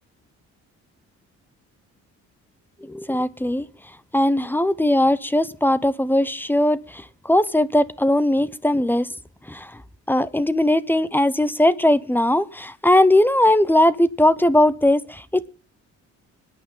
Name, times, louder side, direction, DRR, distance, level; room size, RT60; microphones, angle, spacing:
voice 1, 2.8-3.7 4.1-9.1 9.5-9.8 10.1-15.5, left 1 dB, 5° left, 0.8 m, -19 dB
25.0 x 9.2 x 3.8 m
cardioid pair, 90°, 30 cm